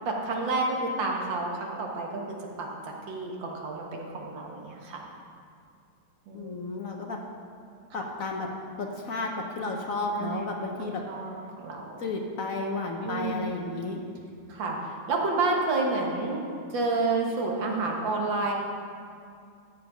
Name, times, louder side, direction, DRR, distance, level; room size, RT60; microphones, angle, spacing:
voice 1, 0.1-2.2 2.6-5.0 6.3-6.8 10.2-10.4 10.8-12.0 13.0-13.4 14.5-16.4 16.7-18.5, right 3 dB, 85° right, 0 dB, 2.1 m, -30 dB
voice 2, 6.3-7.2 7.9-8.5 8.8-11.0 12.0-14.0, left 3 dB, 55° left, 1 dB, 1.2 m, -32 dB
13.5 x 7.4 x 5.1 m, 2.3 s
omnidirectional pair, 2.0 m